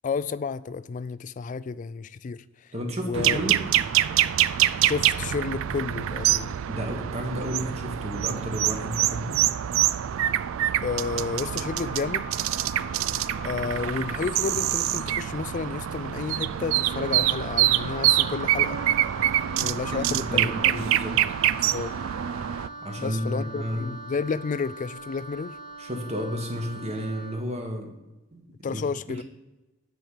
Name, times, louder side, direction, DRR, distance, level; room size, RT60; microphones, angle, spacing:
voice 1, 0.0-2.7 3.0-3.4 4.8-6.5 10.8-12.3 13.4-18.9 19.6-21.0 21.7-22.0 23.0-25.6 28.6-29.2, left 5 dB, 40° left, 0.3 m, -31 dB
voice 2, 2.7-3.6 6.7-9.4 20.1-21.1 22.8-23.9 25.8-27.9 28.3-29.2, equal, 35° right, 1.5 m, -32 dB
sound 1, 3.1-22.7, right 12 dB, 85° right, 0.4 m, -25 dB
Wind instrument woodwind instrument, 10.7-15.2, left 8 dB, 5° left, 1.8 m, -44 dB
Wind instrument woodwind instrument 2, 16.8-27.5, right 2 dB, 65° right, 2.3 m, -41 dB
9.3 x 4.9 x 5.7 m
head